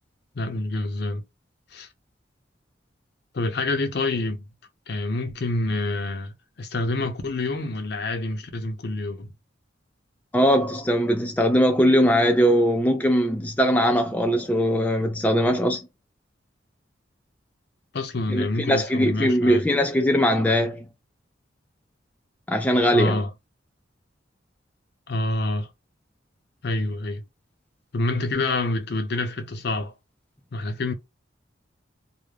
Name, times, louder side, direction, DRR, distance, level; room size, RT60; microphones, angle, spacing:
voice 1, 0.3-1.2 1.7-1.9 3.3-4.5 4.9-9.3 17.9-19.7 22.9-23.3 25.1-25.7 26.6-27.2 27.9-29.9 30.5-30.9, left 2 dB, 60° left, 0.6 m, -27 dB
voice 2, 10.3-15.8 18.3-20.9 22.5-23.2, equal, 10° left, 0.3 m, -20 dB
2.4 x 2.0 x 3.2 m
head